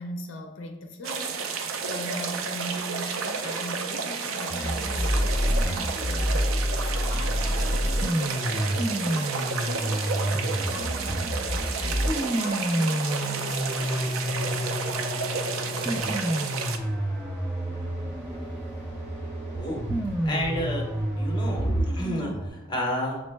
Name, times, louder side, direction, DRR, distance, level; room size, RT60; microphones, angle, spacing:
voice 1, 0.0-6.3 6.8-14.4, left 1 dB, 65° left, 4 dB, 0.5 m, -40 dB
sound 1, 1.0-16.8, right 5 dB, 75° right, 0.4 m, -31 dB
sound 2, 4.5-22.5, equal, 5° right, 0.3 m, -28 dB
sound 3, 16.7-22.2, equal, 50° right, 1.3 m, -45 dB
voice 2, 19.5-23.2, equal, 20° left, -1 dB, 0.8 m, -29 dB
6.1 x 2.0 x 3.2 m, 1.0 s
head